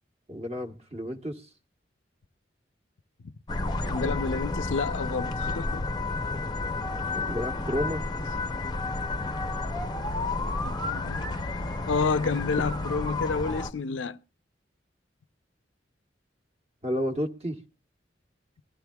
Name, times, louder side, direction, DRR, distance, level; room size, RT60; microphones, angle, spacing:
voice 1, 0.3-1.5 7.1-8.0 16.8-17.6, equal, 35° right, 1.2 m, -31 dB
sound 1, 3.5-13.7, left 2 dB, 20° left, 0.6 m, -31 dB
voice 2, 3.9-5.9 10.6-11.4 11.9-14.2, left 4 dB, 85° left, 0.5 m, -29 dB
22.5 x 13.0 x 2.3 m
head